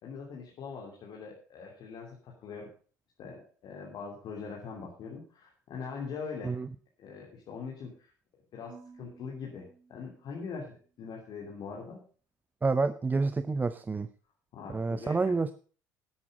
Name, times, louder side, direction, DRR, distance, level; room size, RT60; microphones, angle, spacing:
voice 1, 0.0-2.7 3.2-6.6 7.0-8.1 8.5-12.0 14.5-15.3, left 5 dB, 50° left, -1 dB, 2.9 m, -42 dB
Marimba xylophone / Wood, 8.7-10.9, right 5 dB, 60° right, 2.4 m, -56 dB
voice 2, 12.6-14.1 14.7-15.5, right 4 dB, 20° right, 13 dB, 0.6 m, -28 dB
12.0 x 8.5 x 5.3 m, 0.40 s
hypercardioid pair, 65°, 10 cm